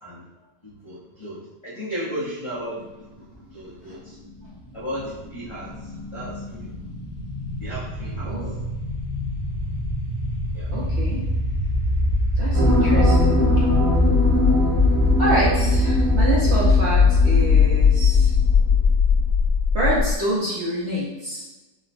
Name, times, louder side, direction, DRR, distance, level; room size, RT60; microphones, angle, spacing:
voice 1, 0.6-4.2 4.7-6.7 7.6-8.4 10.5-10.7, equal, 55° left, -11 dB, 0.3 m, -35 dB
sound 1, 4.3-20.2, left 4 dB, 25° left, 0.6 m, -21 dB
voice 2, 8.2-8.6 10.7-11.2 12.4-13.6 15.2-18.3 19.7-21.4, right 1 dB, 55° right, -6 dB, 0.7 m, -27 dB
sound 2, 12.5-18.6 19.0-19.1, equal, 80° right, 1.2 m, -24 dB
4.3 x 2.1 x 2.5 m, 1.1 s
omnidirectional pair, 1.7 m